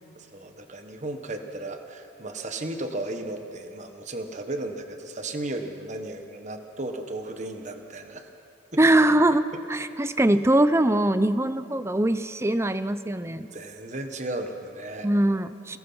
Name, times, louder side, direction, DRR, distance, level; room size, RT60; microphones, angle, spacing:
voice 1, 0.1-8.3 13.3-15.1, right 2 dB, 40° right, 6 dB, 1.3 m, -35 dB
voice 2, 8.8-13.5 15.0-15.8, right 1 dB, 15° right, 12 dB, 0.6 m, -22 dB
28.0 x 19.0 x 5.6 m, 2.6 s
head